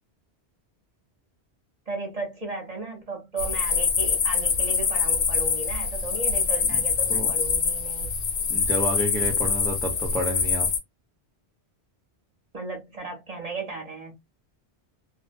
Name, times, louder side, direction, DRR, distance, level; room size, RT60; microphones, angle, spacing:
voice 1, 1.9-8.1 12.5-14.2, right 3 dB, 40° right, 0.7 m, -35 dB
sound 1, 3.4-10.8, left 6 dB, 60° left, 0.8 m, -25 dB
voice 2, 8.5-10.7, equal, 5° left, 0.5 m, -30 dB
2.6 x 2.0 x 2.4 m
omnidirectional pair, 1.1 m